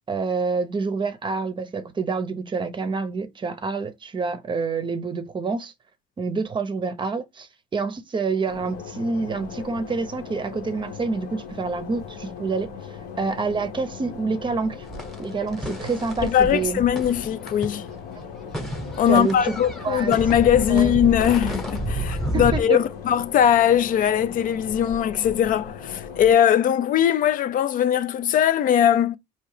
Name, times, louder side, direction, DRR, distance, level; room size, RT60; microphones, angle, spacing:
voice 1, 0.1-5.7 6.2-7.5 7.7-12.7 13.2-14.8 15.2-16.8 19.1-19.5 19.8-20.2 20.7-20.9 22.3-22.8, right 4 dB, 30° right, 0.6 m, -27 dB
sound 1, 8.5-26.3, left 6 dB, 70° left, 1.0 m, -39 dB
sound 2, 14.8-18.2 18.5-22.6, right 1 dB, ahead, 0.9 m, -30 dB
voice 2, 16.2-17.8 19.0-29.2, left 10 dB, 55° left, 0.4 m, -20 dB
4.6 x 2.9 x 3.2 m
cardioid pair, 110°, 17 cm